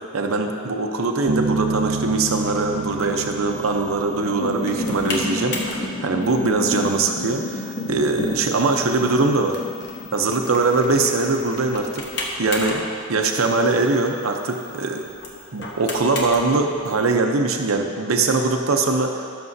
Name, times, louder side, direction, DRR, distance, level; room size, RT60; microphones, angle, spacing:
voice 1, 0.1-9.6 10.1-12.0 12.4-15.0 15.5-19.4, right 3 dB, 80° right, 3 dB, 0.7 m, -22 dB
sound 1, 0.9-1.9 2.5-2.9 3.7-14.8 15.1-15.6 15.9-16.0 16.5-17.2, left 1 dB, 85° left, 2.5 m, -31 dB
Bass guitar, 1.3-4.8, right 3 dB, 45° right, 0.5 m, -28 dB
sound 2, 2.4-17.1, left 2 dB, 50° left, 1.2 m, -36 dB
16.5 x 6.8 x 2.7 m, 2.3 s
head